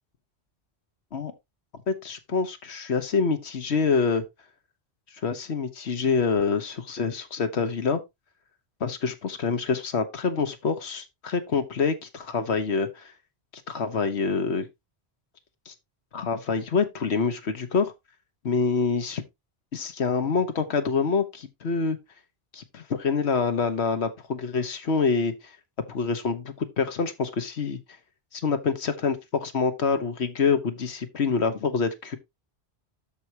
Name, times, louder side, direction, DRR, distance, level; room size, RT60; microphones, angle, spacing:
voice 1, 1.9-4.2 5.2-8.0 8.8-13.1 13.7-14.7 15.7-15.8 16.1-17.9 18.4-19.2 19.7-22.0 22.5-25.5 25.9-27.8 28.3-32.2, left 5 dB, 85° left, 1.5 m, -26 dB
13.0 x 4.7 x 2.9 m
omnidirectional pair, 1.1 m